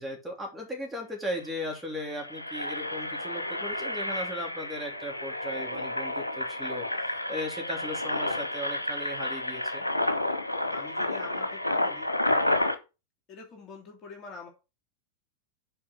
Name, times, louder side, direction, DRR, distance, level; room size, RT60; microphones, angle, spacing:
voice 1, 0.0-9.8, left 1 dB, 5° right, 0 dB, 3.2 m, -37 dB
Engine, 1.0-1.1 1.4-1.6 2.0-12.8, left 1 dB, 85° left, 1.0 m, -30 dB
voice 2, 10.7-12.1 13.3-14.5, left 4 dB, 30° left, 1 dB, 3.0 m, -45 dB
6.9 x 4.9 x 6.3 m, 0.28 s
figure-of-eight pair, 90°, 0 cm